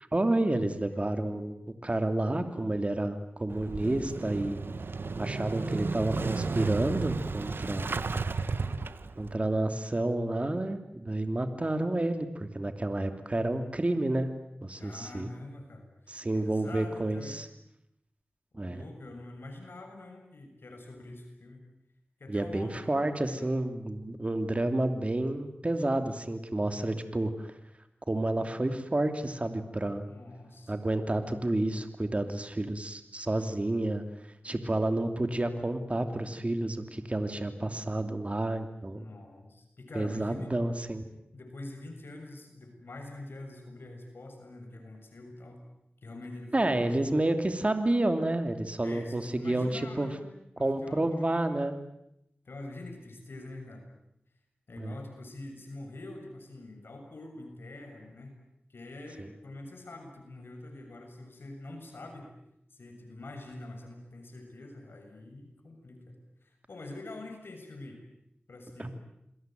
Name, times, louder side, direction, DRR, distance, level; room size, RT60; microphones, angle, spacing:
voice 1, 0.1-1.5 1.8-4.6 5.2-7.9 9.2-14.3 14.6-15.3 16.1-17.5 18.5-18.8 22.3-27.5 28.1-30.0 30.7-34.0 34.4-39.0 39.9-41.0 46.5-50.1 50.6-51.8 54.8-54.9 59.2-59.3 68.8-68.9, right 1 dB, 35° right, 8 dB, 2.8 m, -30 dB
Motorcycle / Engine starting, 3.5-9.4, right 4 dB, 80° right, 1.2 m, -33 dB
voice 2, 8.5-8.9 14.8-15.9 16.3-17.4 18.5-21.6 22.2-23.5 30.1-30.8 38.9-40.5 41.3-45.6 46.0-47.2 48.8-50.3 50.5-51.7 52.5-53.8 54.7-58.3 58.7-62.3 62.7-66.2 66.4-68.0 68.5-68.9, left 2 dB, 85° left, 3 dB, 7.1 m, -45 dB
28.5 x 21.5 x 9.3 m, 0.79 s
wide cardioid pair, 60°, 4 cm